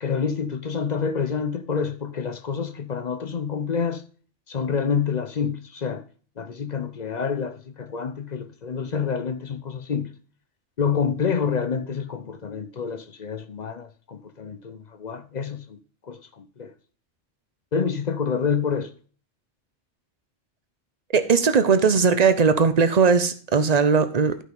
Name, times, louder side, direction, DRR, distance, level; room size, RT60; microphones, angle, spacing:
voice 1, 0.0-4.0 4.5-6.0 6.4-10.1 10.8-15.8 16.0-16.7 17.7-18.9, left 6 dB, 45° left, 0.7 m, -28 dB
voice 2, 21.1-24.4, right 5 dB, 40° right, 0.8 m, -19 dB
12.5 x 5.5 x 3.8 m
omnidirectional pair, 1.3 m